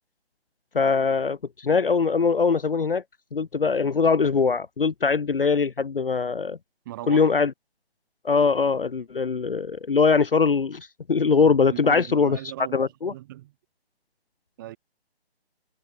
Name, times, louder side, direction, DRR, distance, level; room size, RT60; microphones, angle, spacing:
voice 1, 0.7-3.0 3.3-6.6 7.1-7.5 8.2-12.4 12.7-13.1, left 5 dB, 60° left, 0.7 m, -22 dB
voice 2, 6.9-7.3 11.7-12.8 13.1-13.5 14.6-14.8, right 15 dB, 20° right, 4.0 m, -37 dB
figure-of-eight pair, 150°, 32 cm